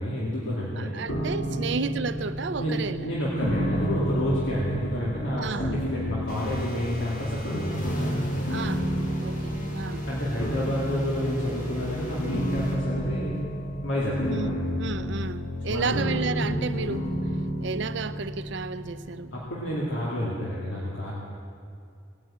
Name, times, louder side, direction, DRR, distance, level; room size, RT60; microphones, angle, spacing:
voice 1, 0.0-1.0 1.5-1.6 2.6-8.1 10.1-13.4 13.8-14.6 15.7-15.9 19.3-21.1, equal, 70° left, 2.4 m, -29 dB
voice 2, 0.8-3.1 5.4-5.8 8.5-10.1 14.3-17.1 17.6-19.4, right 4 dB, 60° right, 0.5 m, -32 dB
sound 1, 1.1-20.0, equal, 85° left, 1.8 m, -31 dB
sound 2, 6.3-12.8, equal, 40° left, 2.3 m, -38 dB
17.5 x 9.5 x 8.6 m
head